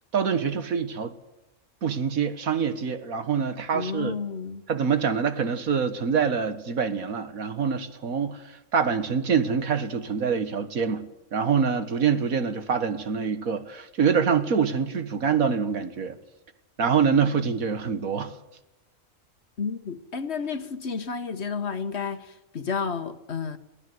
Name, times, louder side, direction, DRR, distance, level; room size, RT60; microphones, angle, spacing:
voice 1, 0.1-1.1 1.8-4.2 4.7-11.1 11.3-16.2 16.8-18.3, right 6 dB, 80° right, 1.9 m, -25 dB
voice 2, 3.7-4.6 19.6-23.6, left 5 dB, 50° left, 1.5 m, -31 dB
23.5 x 16.0 x 7.9 m
omnidirectional pair, 1.5 m